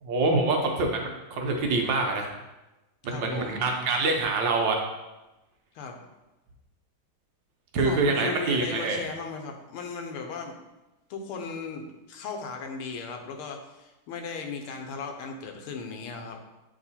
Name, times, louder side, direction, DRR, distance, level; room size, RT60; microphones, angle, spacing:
voice 1, 0.0-2.3 3.0-4.8 7.7-9.0, right 3 dB, 70° right, 1 dB, 1.4 m, -25 dB
voice 2, 3.1-3.6 5.7-6.0 7.8-10.6 11.1-16.4, left 5 dB, 85° left, 4 dB, 1.6 m, -37 dB
7.7 x 2.9 x 4.2 m, 1.0 s
omnidirectional pair, 2.3 m